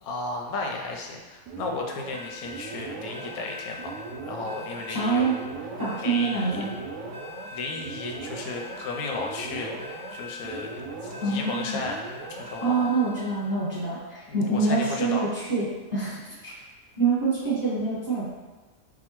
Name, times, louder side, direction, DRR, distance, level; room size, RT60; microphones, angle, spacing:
voice 1, 0.0-5.3 5.9-6.6 7.5-9.7 10.1-10.7 11.0-12.0 12.3-12.9 14.3-15.2, left 3 dB, 85° left, 1 dB, 1.0 m, -34 dB
sound 1, 1.5-13.6, right 1 dB, 70° right, 0.9 m, -39 dB
voice 2, 4.9-5.3 5.8-6.7 11.2-11.8 12.6-15.6 15.9-16.5 17.0-18.3, right 4 dB, 20° right, -9 dB, 0.9 m, -26 dB
5.0 x 2.1 x 3.0 m, 1.3 s
omnidirectional pair, 1.5 m